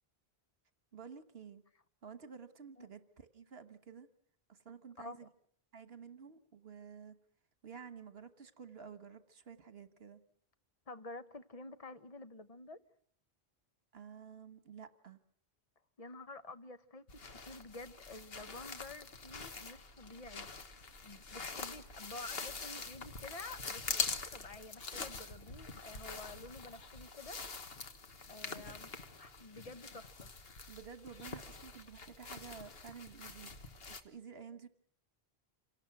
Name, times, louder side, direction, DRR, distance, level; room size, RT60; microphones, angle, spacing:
voice 1, 0.9-1.6 2.0-4.1 4.5-5.3 5.7-7.2 7.6-10.2 13.9-15.2 30.7-34.7, right 6 dB, 70° right, 1.6 m, -51 dB
voice 2, 5.0-5.3 10.9-12.8 16.0-20.5 21.0-27.7 28.3-28.9 29.2-30.3, left 2 dB, 35° left, 1.1 m, -50 dB
sound 1, 17.1-34.0, left 4 dB, 70° left, 1.7 m, -44 dB
27.0 x 18.5 x 6.0 m
omnidirectional pair, 1.1 m